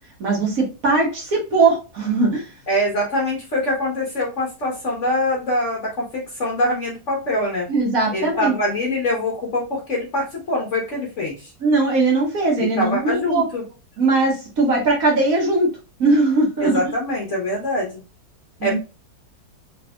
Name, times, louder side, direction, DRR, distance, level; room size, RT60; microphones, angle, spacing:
voice 1, 0.2-2.5 7.7-8.5 11.6-13.5 14.0-15.7 16.0-16.8 18.6-18.8, right 3 dB, 55° right, -1 dB, 1.5 m, -19 dB
voice 2, 2.7-7.7 8.1-11.5 12.6-13.6 16.6-18.0 18.6-18.8, left 1 dB, 50° left, -2 dB, 1.1 m, -24 dB
3.4 x 3.3 x 2.2 m, 0.31 s
omnidirectional pair, 1.9 m